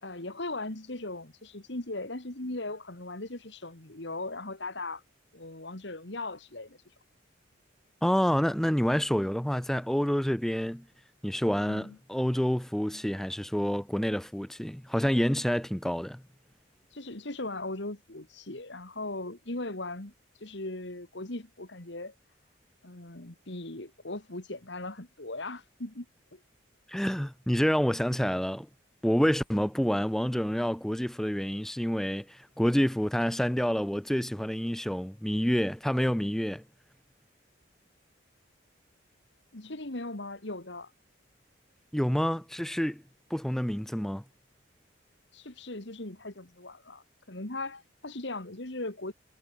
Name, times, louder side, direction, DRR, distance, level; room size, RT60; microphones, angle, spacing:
voice 1, 0.0-5.0 5.3-6.8 11.7-12.0 16.9-20.1 20.4-22.1 22.8-26.1 26.3-26.4 39.5-40.9 45.3-49.1, left 2 dB, 65° left, 2.4 m, -38 dB
voice 2, 8.0-10.8 11.2-16.2 26.9-28.7 29.0-36.6 41.9-43.0 43.3-44.2, equal, ahead, 0.3 m, -28 dB
head